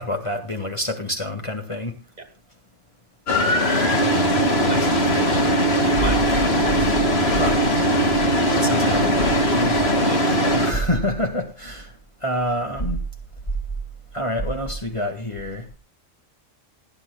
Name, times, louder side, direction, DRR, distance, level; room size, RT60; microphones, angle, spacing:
voice 1, 0.0-1.9 7.3-7.6 8.5-9.8 10.4-11.9 12.2-13.0 14.1-15.6, equal, 25° left, 1.7 m, -27 dB
sound 1, 3.3-10.7, equal, 55° left, 2.2 m, -19 dB
voice 2, 4.4-5.6 5.8-6.9 10.0-10.4, right 2 dB, 35° right, 1.9 m, -34 dB
28.0 x 9.9 x 2.3 m
omnidirectional pair, 1.3 m